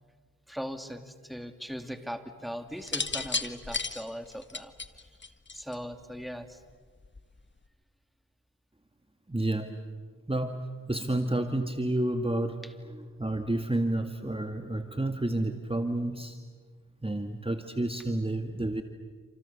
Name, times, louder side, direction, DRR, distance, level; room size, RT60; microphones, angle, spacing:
voice 1, 0.5-4.7 5.5-6.6 12.6-12.7, equal, ahead, 7 dB, 2.6 m, -39 dB
sound 1, 2.8-5.9 7.0-7.4, left 3 dB, 35° left, 1.5 m, -33 dB
voice 2, 9.3-9.7 10.3-12.6 12.9-16.4 17.0-18.8, right 1 dB, 15° right, 6 dB, 1.9 m, -30 dB
28.5 x 27.5 x 7.0 m, 1.5 s
cardioid pair, 40°, 34 cm